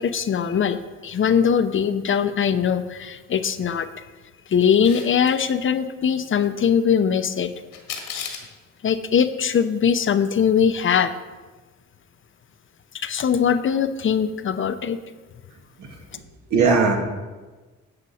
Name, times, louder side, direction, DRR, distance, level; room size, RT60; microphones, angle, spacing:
voice 1, 0.0-3.9 4.5-7.5 8.2-8.4 8.8-11.1 12.9-15.0, left 7 dB, 40° left, 11 dB, 0.6 m, -21 dB
Camera, 4.6-5.3 7.7-8.5, left 7 dB, 90° left, 1.7 m, -34 dB
voice 2, 15.8-16.2 16.5-17.0, right 4 dB, 70° right, 2 dB, 1.8 m, -20 dB
10.5 x 7.9 x 4.2 m, 1.3 s
cardioid pair, 90°, 30 cm